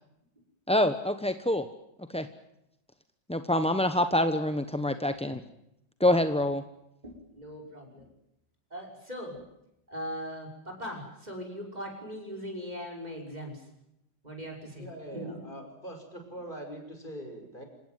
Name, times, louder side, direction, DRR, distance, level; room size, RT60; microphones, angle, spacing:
voice 1, 0.7-1.7 2.1-2.3 3.3-5.4 6.0-6.6, left 1 dB, 5° left, 9 dB, 0.6 m, -26 dB
voice 2, 7.0-8.1 8.7-9.4 9.9-13.7 14.2-15.5, equal, 20° right, 1 dB, 6.0 m, -40 dB
voice 3, 14.8-17.7, right 1 dB, 25° left, 4 dB, 5.6 m, -42 dB
27.0 x 17.5 x 9.4 m, 0.82 s
omnidirectional pair, 2.0 m